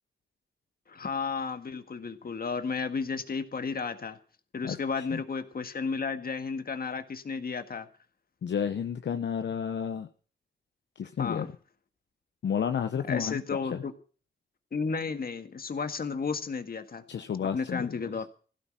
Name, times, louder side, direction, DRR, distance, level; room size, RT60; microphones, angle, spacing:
voice 1, 0.9-4.2 4.5-7.9 11.2-11.5 13.1-13.9 14.7-17.0 17.5-18.3, left 5 dB, 50° left, 8 dB, 1.7 m, -33 dB
voice 2, 4.6-5.2 8.4-10.1 11.0-11.5 12.4-13.4 13.7-13.8 17.1-18.1, left 7 dB, 70° left, 7 dB, 0.9 m, -31 dB
16.0 x 10.0 x 6.3 m, 0.40 s
cardioid pair, 80°, 19 cm